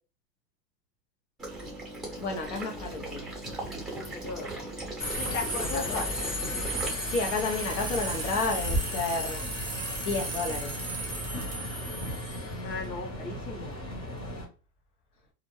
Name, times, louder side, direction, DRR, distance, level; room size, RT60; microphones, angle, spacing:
Water / Liquid, 1.4-6.9, right 1 dB, ahead, 1.0 m, -38 dB
voice 1, 2.2-3.3 5.6-6.0 7.1-10.9, left 3 dB, 50° left, 0.9 m, -32 dB
voice 2, 4.1-4.6 5.2-6.1 12.6-13.7, left 4 dB, 85° left, 1.1 m, -36 dB
Subway metro underground, 5.0-14.4, equal, 25° left, 1.3 m, -33 dB
sound 1, 7.4-11.5, right 5 dB, 20° right, 0.6 m, -43 dB
2.5 x 2.1 x 3.0 m
supercardioid pair, 140°, 48 cm